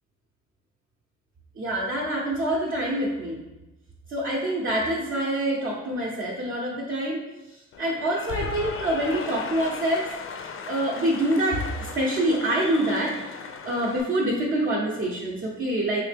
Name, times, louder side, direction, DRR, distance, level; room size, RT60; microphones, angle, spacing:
voice 1, 1.6-3.4 4.1-7.2 7.8-10.1 10.7-13.1 13.6-16.0, right 1 dB, 40° right, -4 dB, 0.7 m, -26 dB
Cheering / Applause, 7.7-14.0, left 5 dB, 45° left, 0.5 m, -36 dB
3.4 x 2.9 x 3.4 m, 0.99 s
cardioid pair, 90°, 30 cm